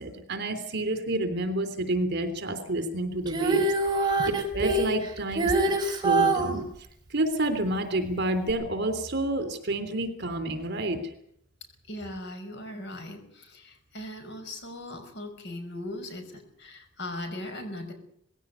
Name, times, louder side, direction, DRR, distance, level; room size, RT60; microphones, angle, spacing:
voice 1, 0.0-3.6 3.9-5.7 6.0-6.7 7.1-11.0, right 1 dB, 55° right, 10 dB, 3.4 m, -29 dB
Female singing, 3.3-6.5 8.5-8.6, right 3 dB, 20° right, 4.9 m, -24 dB
voice 2, 11.9-17.9, left 1 dB, 60° left, 7 dB, 5.8 m, -39 dB
20.0 x 16.5 x 9.5 m, 0.68 s
head